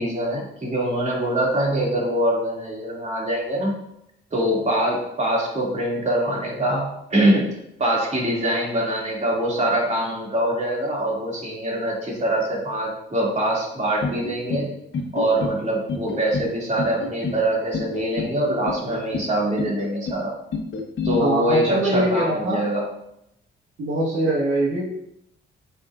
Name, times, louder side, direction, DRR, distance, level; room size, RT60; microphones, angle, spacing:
voice 1, 0.0-3.8 4.3-14.7 15.1-20.3 21.0-22.9, right 1 dB, 35° right, -3 dB, 2.6 m, -24 dB
sound 1, 14.0-14.7 14.9-15.6 15.9-16.5 16.8-17.4 17.7-18.3 18.7-19.3 19.6-20.2 20.5-21.2, left 4 dB, 60° left, 1.2 m, -28 dB
voice 2, 21.2-22.6 23.8-24.8, right 1 dB, 70° right, -4 dB, 1.6 m, -22 dB
8.3 x 5.5 x 2.6 m, 0.79 s
cardioid pair, 80°, 21 cm